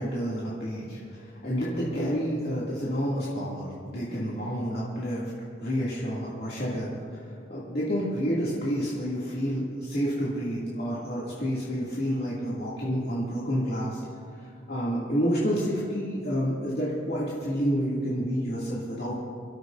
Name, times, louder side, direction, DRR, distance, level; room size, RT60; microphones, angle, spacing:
voice 1, 0.0-5.3 5.6-14.0 14.3-19.1, equal, 55° left, -8 dB, 2.6 m, -29 dB
27.5 x 13.0 x 2.7 m, 2.3 s
head